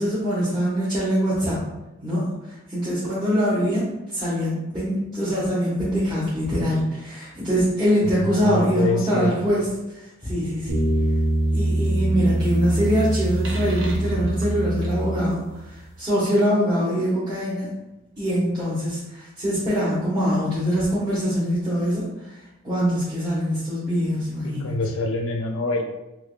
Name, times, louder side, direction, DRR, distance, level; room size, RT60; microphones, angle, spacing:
voice 1, 0.0-1.6 2.0-9.7 9.9-10.8 11.5-17.7 18.2-22.4 22.6-24.8, equal, 20° right, -13 dB, 0.9 m, -23 dB
voice 2, 8.0-9.3 24.4-25.8, left 3 dB, 65° left, 4 dB, 0.4 m, -26 dB
sound 1, 10.7-15.6, right 1 dB, 60° right, 0.6 m, -23 dB
3.6 x 2.9 x 2.2 m, 0.99 s
head